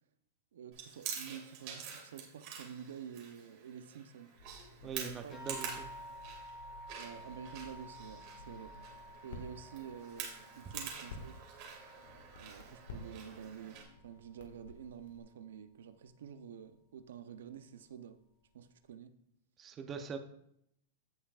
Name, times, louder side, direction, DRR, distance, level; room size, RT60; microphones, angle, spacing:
voice 1, 0.5-4.3 4.8-5.4 6.9-8.8 9.2-11.4 12.4-18.2 18.5-19.1, right 8 dB, 85° right, 0.7 m, -49 dB
Chewing mastication, 0.7-13.8, right 7 dB, 45° right, 2.2 m, -47 dB
Crackle, 4.3-15.2, left 2 dB, 75° left, 1.7 m, -54 dB
voice 2, 4.8-5.9 10.7-10.8 19.6-20.2, right 6 dB, 20° right, 0.7 m, -42 dB
sound 1, 5.3-14.1 14.4-15.3 16.1-16.2 16.6-16.7, equal, 30° left, 2.1 m, -53 dB
15.0 x 5.7 x 2.4 m
supercardioid pair, 155°, 0 cm